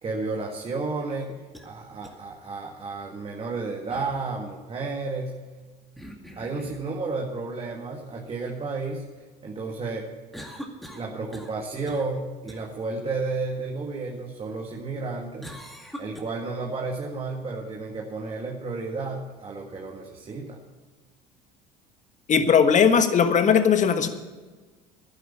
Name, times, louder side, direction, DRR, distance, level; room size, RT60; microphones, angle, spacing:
voice 1, 0.0-5.4 6.4-9.0 9.4-10.1 10.9-15.5 16.0-20.6, right 3 dB, 30° right, -1 dB, 1.9 m, -32 dB
sound 1, 1.2-1.7 2.0-2.1 3.9-4.2 6.0-6.9 10.3-11.6 11.9-12.1 12.5-12.6 15.4-16.2, equal, ahead, 2.2 m, -42 dB
voice 2, 22.3-24.1, left 7 dB, 40° left, 9 dB, 1.4 m, -18 dB
11.5 x 9.6 x 7.3 m, 1.3 s
hypercardioid pair, 75°, 20 cm